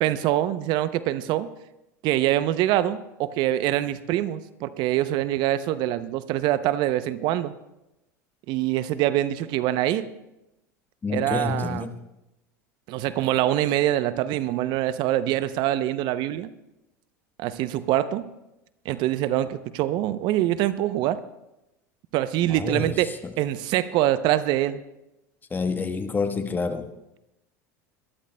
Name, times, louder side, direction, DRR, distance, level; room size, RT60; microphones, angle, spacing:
voice 1, 0.0-1.5 2.0-7.5 8.5-10.1 11.1-11.9 12.9-16.5 17.4-18.3 18.9-21.2 22.1-24.8, right 13 dB, 55° right, 14 dB, 0.6 m, -24 dB
voice 2, 11.0-12.0 22.5-23.0 23.2-23.3 25.5-26.9, left 4 dB, 20° left, 8 dB, 1.2 m, -28 dB
23.5 x 13.0 x 2.2 m, 0.92 s
hypercardioid pair, 85°, 9 cm